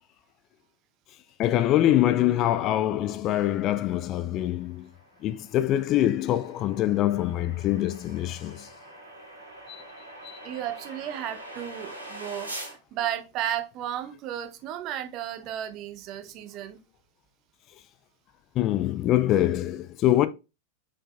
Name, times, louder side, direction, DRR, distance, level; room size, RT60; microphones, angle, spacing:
voice 1, 1.4-4.9 5.2-8.7 9.7-9.8 10.2-10.4 18.6-20.3, left 13 dB, 35° left, 0.3 m, -24 dB
sound 1, 4.1-12.7, right 1 dB, 80° right, 1.4 m, -44 dB
voice 2, 10.4-16.8, right 11 dB, 40° right, 0.6 m, -34 dB
4.8 x 4.5 x 2.2 m
figure-of-eight pair, 90°, 0 cm